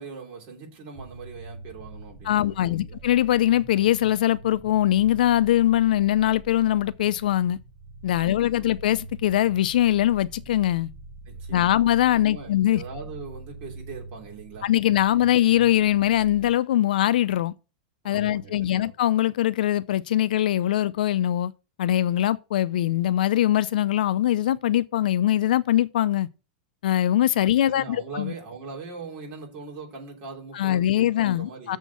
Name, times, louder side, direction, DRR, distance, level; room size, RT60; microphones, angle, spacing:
voice 1, 0.0-3.0 8.2-8.7 11.2-11.8 12.1-14.7 18.1-18.9 27.6-31.8, right 4 dB, 30° right, 2.9 m, -41 dB
sound 1, 1.0-16.5, right 2 dB, 10° right, 1.0 m, -43 dB
voice 2, 2.3-7.6 8.0-10.9 11.5-12.8 14.6-17.5 18.0-21.5 21.8-26.3 26.8-28.3 30.5-31.8, left 12 dB, 70° left, 0.5 m, -22 dB
7.0 x 4.5 x 6.8 m
supercardioid pair, 170°, 5 cm